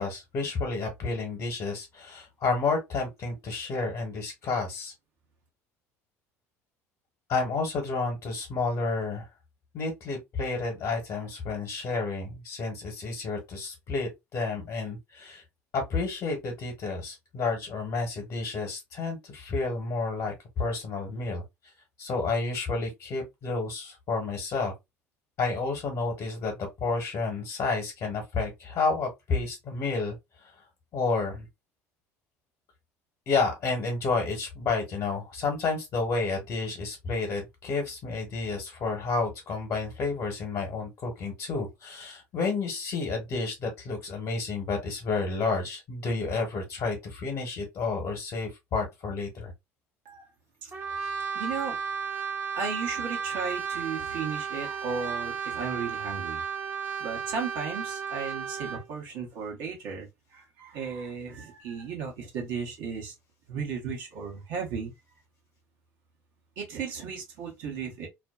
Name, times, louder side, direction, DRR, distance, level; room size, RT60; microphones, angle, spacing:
voice 1, 0.0-4.9 7.3-9.3 9.7-15.4 15.7-21.4 22.0-24.7 25.4-30.5 30.9-31.5 33.3-49.5, left 4 dB, 50° left, 1.0 m, -30 dB
Brass instrument, 50.7-58.9, right 6 dB, 25° right, 0.9 m, -34 dB
voice 2, 51.3-51.8 52.5-56.4 57.0-63.1 63.5-64.9 66.6-68.1, right 5 dB, 65° right, 0.9 m, -35 dB
2.5 x 2.2 x 2.3 m
hypercardioid pair, 70°, 8 cm